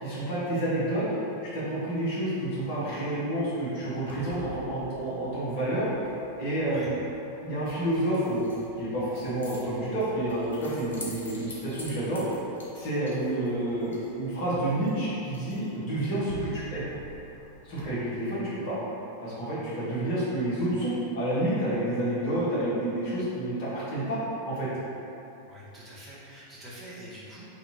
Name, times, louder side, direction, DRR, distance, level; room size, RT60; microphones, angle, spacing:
voice 1, 0.0-1.1 1.5-5.9 6.4-6.9 7.4-8.5 8.8-12.2 12.7-16.8 17.6-18.8 19.2-24.2 24.4-24.7, right 1 dB, 45° left, -10 dB, 1.4 m, -29 dB
Keys jangling, 4.0-17.8, left 1 dB, 70° left, 0.7 m, -48 dB
voice 2, 25.5-27.5, equal, 10° right, -9 dB, 1.1 m, -45 dB
3.2 x 2.8 x 4.2 m, 3.0 s
figure-of-eight pair, 90°, 0 cm